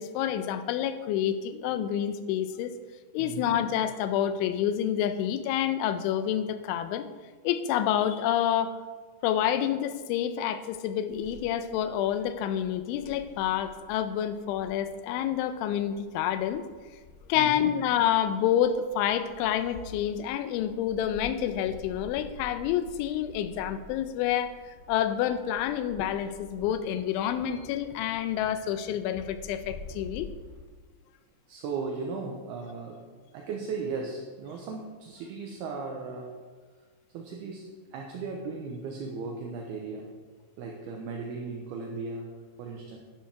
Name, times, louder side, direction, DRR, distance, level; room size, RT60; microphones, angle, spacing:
voice 1, 0.0-2.7 3.1-7.1 7.4-8.8 9.2-16.6 17.3-30.3, left 10 dB, 90° left, 11 dB, 3.1 m, -28 dB
voice 2, 3.2-3.6 17.4-17.7 31.5-36.4 37.1-40.1 40.6-43.0, right 4 dB, 75° right, 0 dB, 2.5 m, -37 dB
sound 1, 11.1-30.6, left 3 dB, 70° left, 2.6 m, -50 dB
12.5 x 11.0 x 3.5 m, 1.5 s
omnidirectional pair, 5.3 m